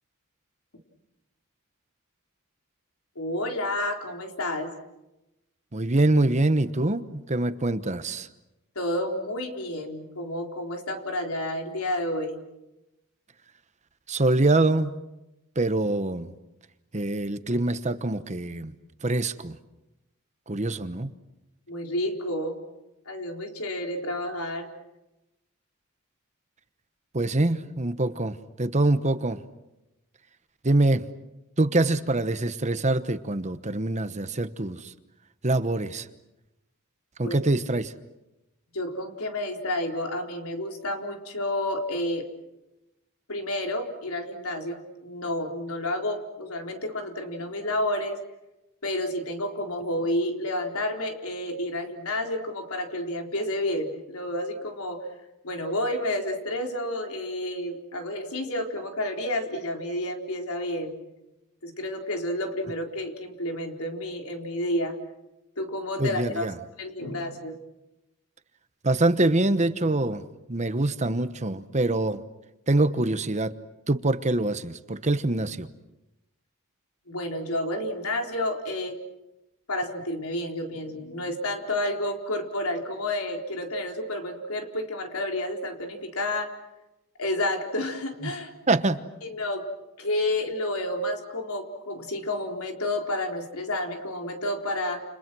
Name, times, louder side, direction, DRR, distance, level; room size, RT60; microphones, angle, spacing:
voice 1, 3.2-4.7 8.8-12.4 21.7-22.6 23.1-24.7 37.2-37.4 38.7-42.3 43.3-48.2 48.8-55.1 55.4-61.0 61.6-65.0 65.6-66.5 66.8-67.6 77.1-79.0 79.7-86.6 87.2-88.5 89.2-89.7 90.0-95.0, left 1 dB, 85° left, 3 dB, 4.0 m, -30 dB
voice 2, 5.7-8.3 14.1-15.0 15.6-16.3 16.9-18.7 19.0-19.6 20.5-21.1 27.1-29.4 30.6-31.1 31.6-34.9 35.4-36.1 37.2-37.9 66.0-66.5 68.8-70.2 70.5-72.2 72.7-73.5 73.9-75.7 88.7-89.0, right 2 dB, 35° right, 11 dB, 1.1 m, -24 dB
29.5 x 29.5 x 6.2 m, 0.95 s
head